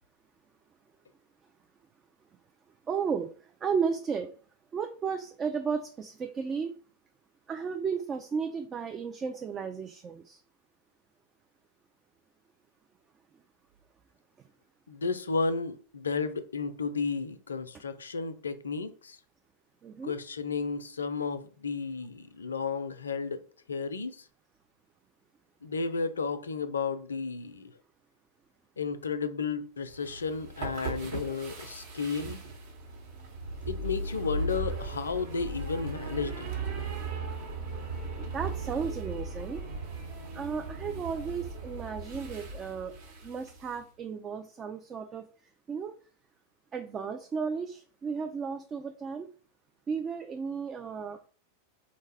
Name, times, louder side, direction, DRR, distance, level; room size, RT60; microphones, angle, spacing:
voice 1, 2.9-4.4 4.7-6.7 7.5-10.4 19.8-20.2 38.2-39.6 40.3-42.9 43.2-45.3 45.7-46.0 46.7-49.3 49.9-51.3, right 6 dB, 25° right, 0.3 m, -34 dB
voice 2, 14.9-19.2 20.0-23.4 23.7-24.2 25.6-27.7 28.8-32.4 33.7-36.5, left 4 dB, 70° left, 0.4 m, -33 dB
sound 1, 29.9-43.8, right 3 dB, 55° right, 1.0 m, -37 dB
3.7 x 2.1 x 3.3 m
figure-of-eight pair, 90°, 0 cm